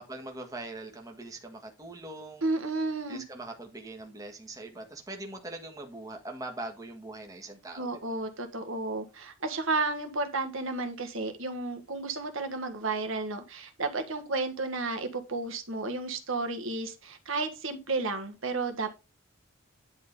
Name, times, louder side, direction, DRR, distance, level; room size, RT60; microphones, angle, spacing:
voice 1, 0.0-2.4 3.1-7.9, right 2 dB, 15° right, 1.7 m, -42 dB
voice 2, 2.4-3.2 7.8-18.9, right 3 dB, 70° right, 1.6 m, -32 dB
10.5 x 3.8 x 5.3 m
head